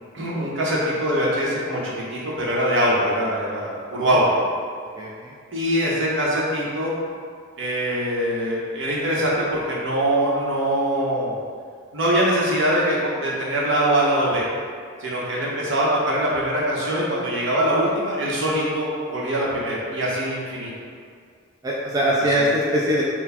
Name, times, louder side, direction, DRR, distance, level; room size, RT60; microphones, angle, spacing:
voice 1, 0.1-4.3 5.5-6.9 7.6-11.3 11.9-14.4 15.0-20.7 22.3-22.6, right 1 dB, 65° right, -5 dB, 0.9 m, -23 dB
voice 2, 5.0-5.3 21.6-23.0, equal, 20° right, -5 dB, 0.3 m, -22 dB
4.0 x 2.2 x 4.2 m, 2.1 s
head